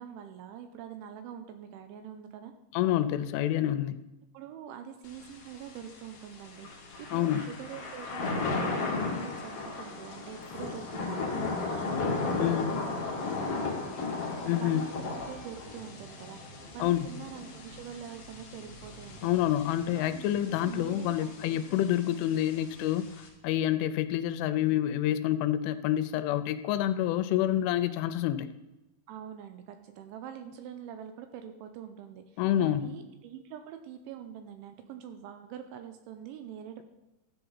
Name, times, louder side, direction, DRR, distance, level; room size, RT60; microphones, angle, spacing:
voice 1, 0.0-2.5 4.3-16.4 16.7-19.3 19.9-21.6 29.1-36.8, right 9 dB, 80° right, 7 dB, 2.9 m, -45 dB
voice 2, 2.7-4.0 7.1-7.5 12.4-12.7 14.5-14.8 16.8-17.1 19.2-28.5 32.4-33.0, left 12 dB, 85° left, 11 dB, 3.0 m, -28 dB
Thunder / Rain, 5.1-23.3, left 3 dB, 55° left, 1.7 m, -36 dB
sound 1, 10.4-22.4 22.7-22.8, right 2 dB, 65° right, 2.7 m, -53 dB
Wind instrument woodwind instrument, 11.0-16.2, left 1 dB, 10° right, 3.1 m, -53 dB
13.0 x 8.1 x 4.0 m, 1.0 s
omnidirectional pair, 5.7 m